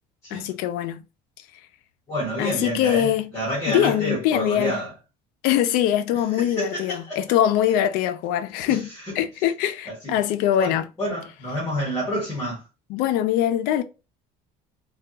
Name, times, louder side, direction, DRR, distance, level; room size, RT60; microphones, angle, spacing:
voice 1, 0.3-1.0 2.4-3.3 3.7-4.8 5.4-10.9 12.9-13.8, left 11 dB, 70° left, 0.5 m, -23 dB
voice 2, 2.1-4.9 6.4-7.2 8.6-8.8 9.1-9.2 9.9-10.1 10.6-12.6, equal, 20° left, 1.2 m, -28 dB
3.3 x 2.3 x 2.7 m
cardioid pair, 170°, 16 cm